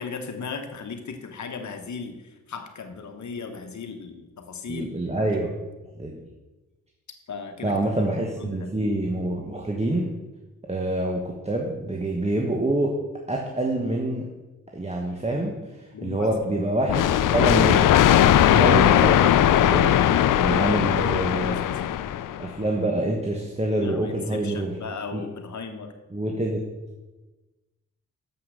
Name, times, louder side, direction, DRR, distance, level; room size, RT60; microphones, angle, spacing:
voice 1, 0.0-4.9 5.2-5.4 7.3-7.9 8.4-8.7 15.9-16.3 20.6-22.0 23.8-25.9, left 5 dB, 60° left, 6 dB, 1.2 m, -36 dB
voice 2, 4.7-5.5 6.0-6.2 7.6-10.1 10.7-13.0 13.3-14.3 14.7-17.0 17.3-17.9 18.5-21.6 22.4-24.7 25.1-25.2 26.1-26.6, right 1 dB, 20° right, 1 dB, 1.2 m, -26 dB
sound 1, 16.9-22.5, left 11 dB, 75° left, 0.5 m, -19 dB
7.2 x 5.8 x 6.3 m, 1.1 s
cardioid pair, 55°, 32 cm